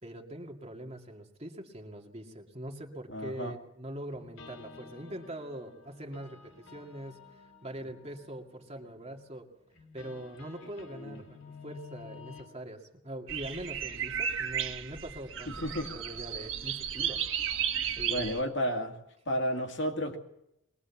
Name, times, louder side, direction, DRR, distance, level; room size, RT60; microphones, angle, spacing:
voice 1, 0.0-9.5 9.9-15.5 15.9-17.3 18.0-18.9 19.3-19.4, right 1 dB, 30° right, 2 dB, 2.2 m, -43 dB
voice 2, 3.1-3.5 10.6-11.2 15.6-15.9 18.1-18.9 19.3-20.2, equal, 60° left, 4 dB, 2.3 m, -32 dB
sound 1, 4.1-12.5, left 4 dB, 75° left, 3.6 m, -52 dB
sound 2, 13.3-18.4, right 8 dB, 70° right, 1.7 m, -34 dB
22.0 x 19.0 x 7.2 m, 0.84 s
head